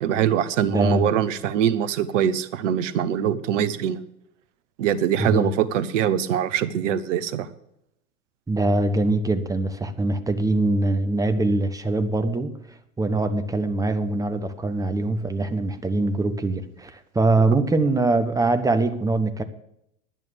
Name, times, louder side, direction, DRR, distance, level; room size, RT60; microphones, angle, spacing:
voice 1, 0.0-4.0 4.8-7.5 17.4-17.6, right 9 dB, 60° right, 16 dB, 1.1 m, -23 dB
voice 2, 0.7-1.1 5.2-5.5 8.5-12.6 13.0-19.4, right 2 dB, 10° right, 10 dB, 1.0 m, -23 dB
10.5 x 9.2 x 6.9 m, 0.77 s
figure-of-eight pair, 85°, 41 cm